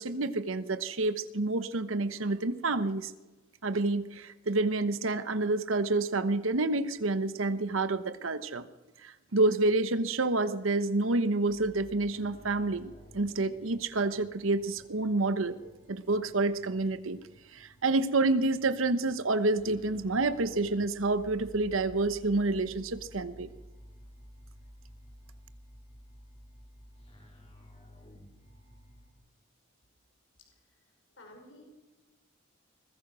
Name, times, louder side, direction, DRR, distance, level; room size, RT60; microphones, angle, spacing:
voice 1, 0.0-3.1 3.6-8.7 9.0-17.2 17.5-23.5, right 2 dB, 85° right, 12 dB, 1.0 m, -28 dB
sound 1, 11.5-29.1, equal, 30° left, 3.6 m, -54 dB
voice 2, 30.4-31.7, left 1 dB, 65° left, 2 dB, 5.2 m, -55 dB
22.0 x 20.5 x 6.3 m, 1.2 s
head